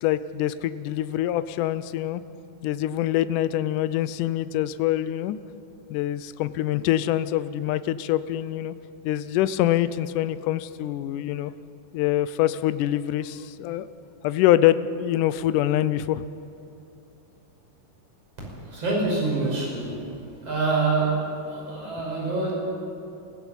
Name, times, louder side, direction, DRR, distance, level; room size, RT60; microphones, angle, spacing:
voice 1, 0.0-2.2 2.6-5.4 5.9-8.7 9.0-11.5 11.9-13.9 14.2-16.2, left 13 dB, 75° left, 14 dB, 2.0 m, -24 dB
voice 2, 18.4-20.0 20.4-22.5, right 3 dB, 45° right, -3 dB, 6.7 m, -26 dB
25.0 x 15.5 x 7.2 m, 2.8 s
omnidirectional pair, 4.0 m